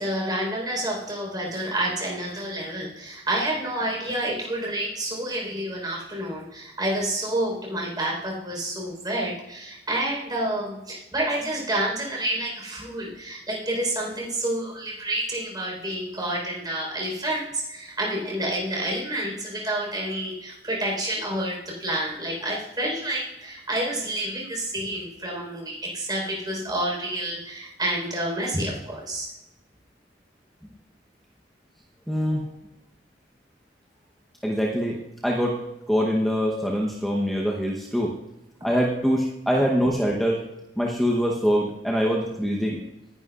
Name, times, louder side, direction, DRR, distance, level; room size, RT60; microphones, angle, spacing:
voice 1, 0.0-29.3 32.3-32.4, right 1 dB, 25° right, -2 dB, 4.4 m, -29 dB
voice 2, 32.1-32.5 34.4-38.2 38.6-40.5 40.8-42.8, equal, ahead, -2 dB, 1.0 m, -24 dB
19.0 x 11.0 x 2.5 m, 0.94 s
head